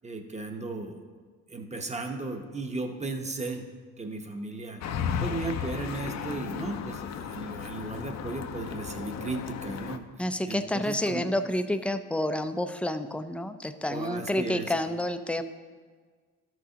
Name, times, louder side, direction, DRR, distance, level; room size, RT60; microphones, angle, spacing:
voice 1, 0.0-1.0 1.5-3.6 4.0-4.8 5.2-10.0 10.5-11.2 13.9-14.7, right 3 dB, 20° right, 4 dB, 1.0 m, -35 dB
sound 1, 4.8-10.0, left 7 dB, 60° left, 0.6 m, -35 dB
voice 2, 10.2-15.4, left 1 dB, 5° left, 8 dB, 0.4 m, -29 dB
13.0 x 6.1 x 2.8 m, 1.5 s
cardioid pair, 90°, 30 cm